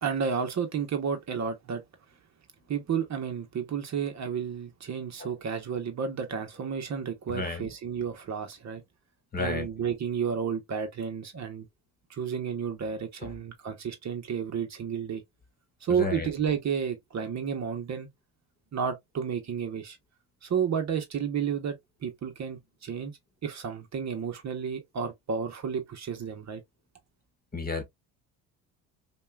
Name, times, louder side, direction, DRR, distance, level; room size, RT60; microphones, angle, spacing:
voice 1, 0.0-1.8 2.7-8.8 9.4-11.7 12.1-15.2 15.8-18.1 18.7-20.0 20.4-21.8 22.0-23.1 23.4-26.6, right 7 dB, 40° right, 1.0 m, -31 dB
voice 2, 7.3-7.7 9.3-9.7 13.2-13.3 16.0-16.3 27.5-27.8, left 3 dB, 20° left, 1.6 m, -32 dB
5.3 x 2.4 x 2.3 m
supercardioid pair, 75°, 41 cm